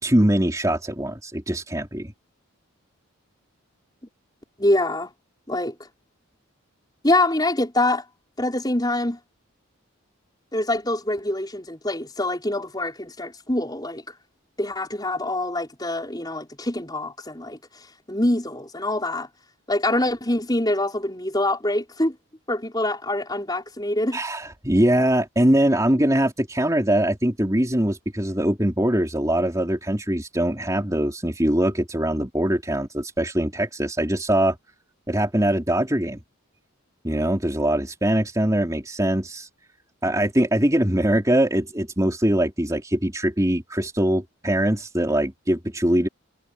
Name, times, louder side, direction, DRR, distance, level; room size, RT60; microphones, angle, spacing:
voice 1, 0.0-2.1 24.1-34.6 35.1-36.2 37.0-39.5 40.0-46.1, right 1 dB, 15° right, 3.7 m, -22 dB
voice 2, 4.6-5.1 5.5-5.8 7.0-8.0 8.4-9.2 10.5-14.0 14.6-17.6 18.1-19.3 19.7-22.2 22.5-24.2, left 1 dB, 20° left, 5.6 m, -24 dB
head